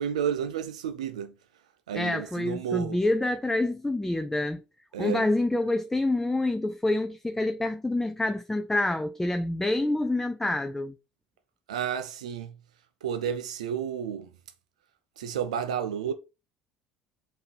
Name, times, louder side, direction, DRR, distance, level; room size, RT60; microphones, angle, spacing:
voice 1, 0.0-1.3 1.9-3.0 4.9-5.3 11.7-12.5 13.0-14.3 15.2-16.1, right 8 dB, 85° right, 0.4 m, -31 dB
voice 2, 1.9-4.6 5.0-10.9, left 2 dB, 10° left, 0.4 m, -27 dB
5.7 x 2.7 x 3.3 m
hypercardioid pair, 65°, 3 cm